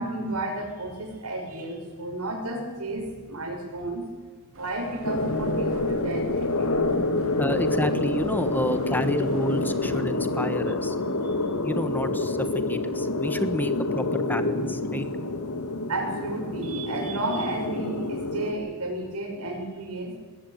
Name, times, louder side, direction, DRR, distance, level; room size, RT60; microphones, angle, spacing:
voice 1, 0.0-4.0 4.6-6.8 11.2-11.4 15.9-20.1, right 1 dB, 80° right, 2 dB, 6.4 m, -32 dB
sound 1, 4.5-10.0, right 1 dB, 60° right, 3.0 m, -46 dB
sound 2, 5.0-18.5, left 2 dB, 90° left, 1.9 m, -27 dB
voice 2, 7.4-10.9 11.6-15.1, equal, 10° left, 11 dB, 1.3 m, -30 dB
20.5 x 16.5 x 9.1 m, 1.4 s
head